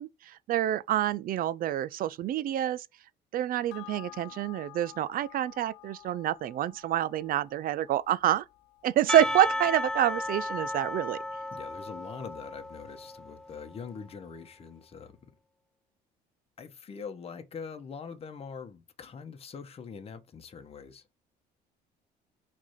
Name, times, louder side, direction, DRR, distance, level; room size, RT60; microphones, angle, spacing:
voice 1, 0.0-2.9 3.3-8.4 8.8-11.2, right 12 dB, 55° right, 0.5 m, -27 dB
sound 1, 3.7-12.5 12.8-12.9, left 20 dB, 80° left, 0.7 m, -52 dB
Percussion / Church bell, 9.1-13.6, left 1 dB, 5° left, 0.4 m, -34 dB
voice 2, 11.5-15.2 16.6-21.1, left 6 dB, 35° left, 1.1 m, -43 dB
6.1 x 3.4 x 5.8 m
cardioid pair, 110°, 17 cm